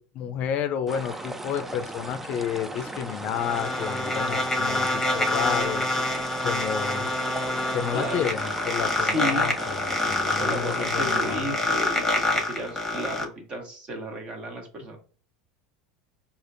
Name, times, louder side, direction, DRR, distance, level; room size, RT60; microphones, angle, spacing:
voice 1, 0.0-5.9 6.4-7.1 7.7-11.6, left 8 dB, 50° left, 0.5 m, -31 dB
sound 1, 0.9-11.4, right 1 dB, 10° right, 0.4 m, -37 dB
sound 2, 2.8-13.2, left 2 dB, 10° left, 1.1 m, -27 dB
voice 2, 7.9-8.3 9.0-9.5 10.4-15.0, equal, 35° right, 1.2 m, -33 dB
4.9 x 2.5 x 2.5 m
supercardioid pair, 105°, 3 cm